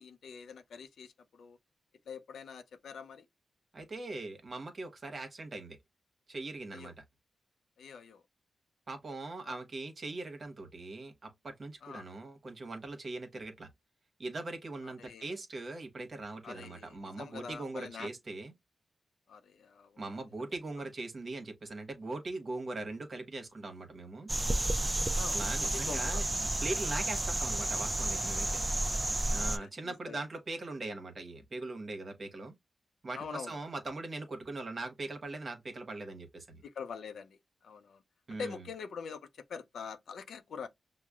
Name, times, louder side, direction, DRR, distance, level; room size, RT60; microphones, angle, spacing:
voice 1, 0.0-1.6 2.1-3.3 6.7-6.9 7.8-8.2 9.4-9.6 11.8-12.1 14.8-15.4 16.4-18.1 19.3-20.3 25.1-26.2 29.6-30.2 33.1-33.6 36.6-38.0 38.3-40.7, left 6 dB, 85° left, 0.4 m, -45 dB
voice 2, 3.7-5.8 6.3-6.9 8.9-13.7 14.2-18.5 20.0-24.3 25.3-26.2 26.6-28.6 29.3-32.5 33.0-36.6 38.3-38.6, right 2 dB, 55° right, 1.0 m, -41 dB
sound 1, 24.3-29.6, right 1 dB, 25° right, 0.5 m, -31 dB
5.8 x 2.0 x 2.3 m
cardioid pair, 50°, 0 cm